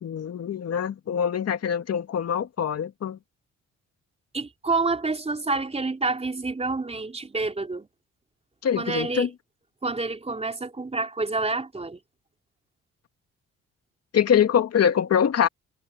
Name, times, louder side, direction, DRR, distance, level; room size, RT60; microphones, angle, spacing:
voice 1, 0.0-3.2 8.6-9.3 14.1-15.5, left 8 dB, 55° left, 2.2 m, -24 dB
voice 2, 4.3-7.9 8.8-9.3 9.8-12.0, right 3 dB, 20° right, 3.6 m, -28 dB
cardioid pair, 90°, 30 cm